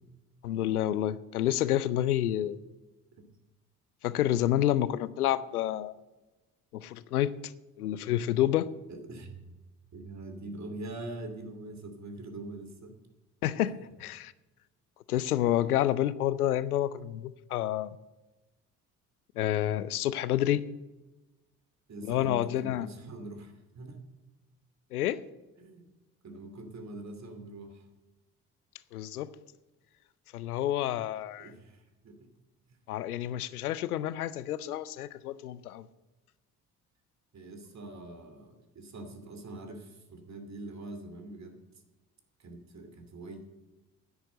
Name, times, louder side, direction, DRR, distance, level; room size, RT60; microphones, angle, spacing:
voice 1, 0.4-2.6 4.0-6.0 6.7-8.7 13.4-14.3 15.1-18.0 19.3-20.7 22.0-22.9 24.9-25.2 28.9-29.3 30.3-31.5 32.9-35.9, left 12 dB, 85° left, 0.6 m, -29 dB
voice 2, 8.9-9.5 9.9-13.0 21.9-24.0 25.6-25.9 26.2-27.9 31.4-32.3 37.3-41.6 42.4-43.4, right 2 dB, 40° right, 2.7 m, -43 dB
10.0 x 9.6 x 7.8 m
figure-of-eight pair, 50°, 44 cm